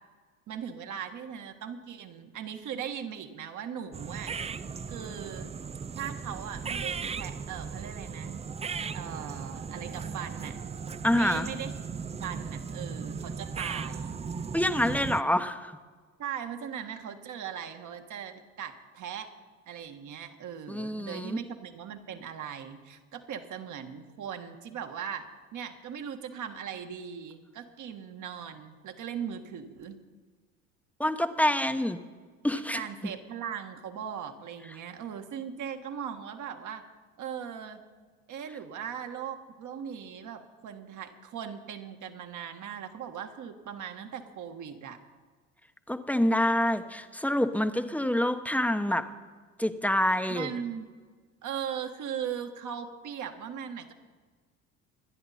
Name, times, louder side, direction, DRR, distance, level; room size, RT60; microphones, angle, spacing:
voice 1, 0.5-4.4 4.9-5.5 6.0-8.4 8.9-10.6 11.1-11.7 12.2-14.2 16.2-19.3 19.7-25.3 25.5-30.0 32.6-36.8 37.2-37.8 38.3-45.0 50.3-50.9 51.4-53.9, right 8 dB, 50° right, 6 dB, 1.8 m, -39 dB
sound 1, 3.9-15.2, right 5 dB, 15° right, 0.5 m, -37 dB
voice 2, 11.0-11.5 14.5-15.8 20.7-21.4 31.0-32.0 32.4-33.1 45.9-49.1 49.6-50.5, left 1 dB, 5° left, 9 dB, 1.1 m, -27 dB
25.5 x 10.0 x 4.3 m, 1.4 s
hypercardioid pair, 70°, 38 cm